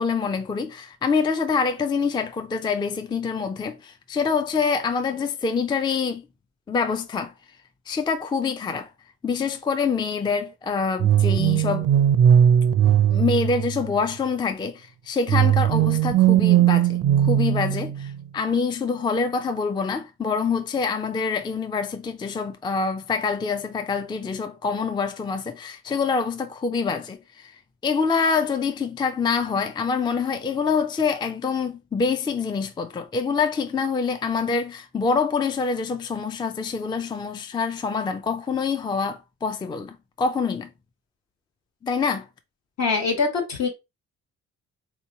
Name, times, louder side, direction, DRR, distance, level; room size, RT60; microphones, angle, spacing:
voice 1, 0.0-6.2 6.7-7.3 7.9-8.9 9.2-11.9 13.1-27.5 27.8-40.7 41.8-42.3, left 5 dB, 15° left, 0.4 m, -26 dB
sound 1, 11.0-14.1 15.3-18.2, right 10 dB, 50° right, 0.4 m, -19 dB
voice 2, 42.8-43.7, left 4 dB, 65° left, 1.4 m, -23 dB
3.6 x 2.9 x 2.7 m
cardioid pair, 90°, 30 cm